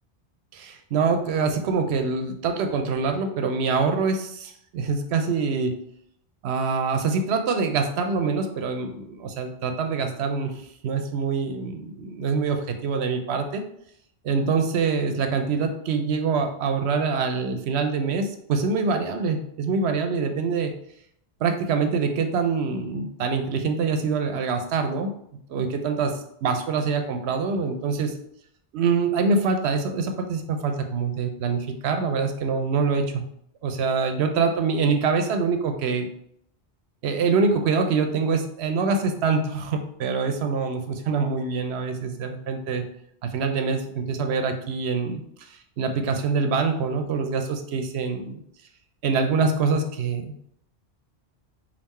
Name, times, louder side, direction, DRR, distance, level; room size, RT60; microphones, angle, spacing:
voice 1, 0.5-5.7 6.4-10.5 10.8-13.6 14.2-20.7 21.4-25.1 25.5-26.1 26.4-28.1 28.7-33.2 33.6-36.1 37.0-42.8 43.2-45.2 45.8-48.4 49.0-50.4, right 4 dB, 75° right, 6 dB, 0.8 m, -25 dB
3.6 x 2.6 x 4.1 m, 0.70 s
omnidirectional pair, 1.1 m